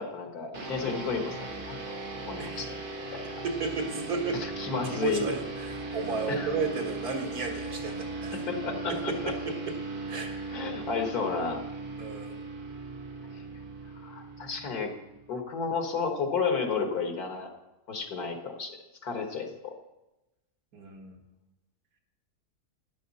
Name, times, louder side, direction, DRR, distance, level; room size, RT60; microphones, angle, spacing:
voice 1, 0.0-1.8 2.3-2.8 3.1-3.4 4.4-5.3 6.3-6.5 8.3-9.3 10.5-11.6 13.3-13.4 13.9-14.9 15.3-17.5 17.9-18.8 19.0-19.7, left 5 dB, 85° left, 4 dB, 2.1 m, -32 dB
sound 1, 0.5-15.4, right 3 dB, 35° right, 1.5 m, -38 dB
voice 2, 3.4-4.4 5.0-8.4 8.9-9.8 10.1-10.3 12.0-12.4 17.9-18.0 20.7-21.2, right 4 dB, 85° right, 2 dB, 2.2 m, -33 dB
13.0 x 10.5 x 4.2 m, 0.98 s
omnidirectional pair, 1.6 m